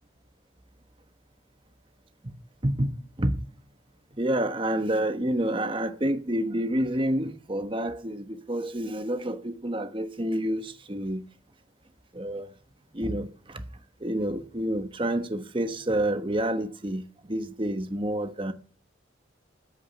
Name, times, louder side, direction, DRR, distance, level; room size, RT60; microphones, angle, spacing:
voice 1, 2.6-3.4 4.2-11.2 12.1-12.5 12.9-13.6 14.0-18.5, right 1 dB, 25° right, 1.2 m, -28 dB
14.0 x 7.3 x 9.9 m
head